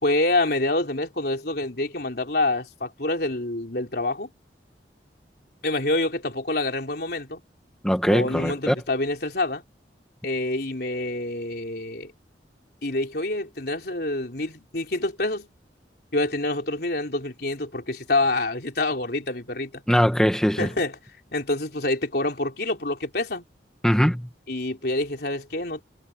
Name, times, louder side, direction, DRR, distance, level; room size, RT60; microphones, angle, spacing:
voice 1, 0.0-4.3 5.6-7.4 8.1-9.6 10.2-12.1 12.8-15.5 16.1-19.8 20.6-21.0 21.3-23.5 24.5-25.8, left 2 dB, 60° left, 4.0 m, -27 dB
voice 2, 7.8-8.7 19.9-20.7 23.8-24.3, equal, 5° left, 1.4 m, -21 dB
head